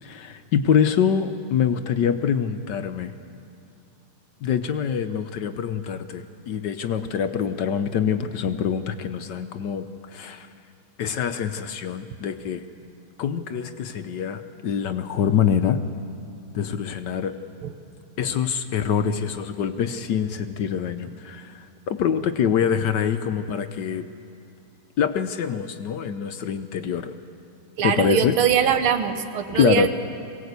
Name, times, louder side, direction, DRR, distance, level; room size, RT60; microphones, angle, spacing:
voice 1, 0.0-3.1 4.4-10.5 11.0-12.6 13.2-15.8 16.5-17.3 18.2-24.1 25.0-27.2 27.8-28.3 29.5-29.9, left 8 dB, 65° left, 9 dB, 1.2 m, -25 dB
voice 2, 27.8-29.9, right 9 dB, 80° right, 8 dB, 2.0 m, -22 dB
22.5 x 18.0 x 8.1 m, 2.5 s
omnidirectional pair, 2.3 m